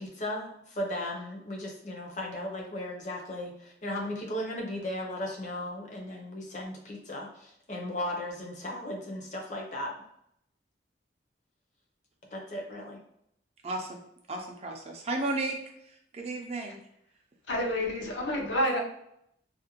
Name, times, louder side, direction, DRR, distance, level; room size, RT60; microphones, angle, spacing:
voice 1, 0.0-9.9 12.3-13.0, left 1 dB, 40° left, -1 dB, 0.6 m, -36 dB
voice 2, 13.6-14.0 14.3-15.6 15.8-16.8, right 2 dB, 35° right, 2 dB, 0.4 m, -33 dB
voice 3, 17.5-18.8, equal, 80° left, 0 dB, 0.6 m, -28 dB
2.4 x 2.1 x 2.9 m, 0.74 s
head